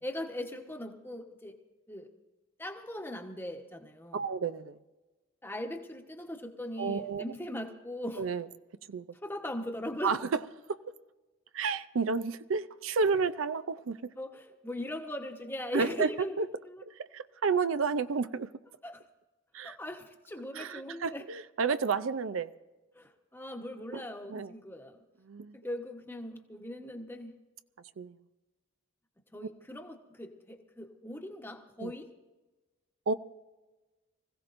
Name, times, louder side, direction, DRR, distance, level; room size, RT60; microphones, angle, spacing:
voice 1, 0.0-1.6 1.9-2.1 2.6-4.2 5.4-8.2 9.2-10.2 14.2-16.8 18.8-19.0 19.6-21.2 22.9-25.0 25.5-27.3 29.3-32.1, left 1 dB, 10° left, 1.1 m, -40 dB
voice 2, 4.1-4.8 6.8-7.2 8.2-8.4 8.9-9.1 10.0-10.2 10.7-10.8 11.5-14.1 15.7-16.1 16.4-16.5 16.9-18.5 19.5-19.8 20.5-22.5 23.9-24.0 24.3-24.5 25.2-25.6 28.0-28.2 31.8-31.9 33.1-33.2, right 5 dB, 80° right, 0.5 m, -31 dB
25.0 x 16.0 x 2.6 m
head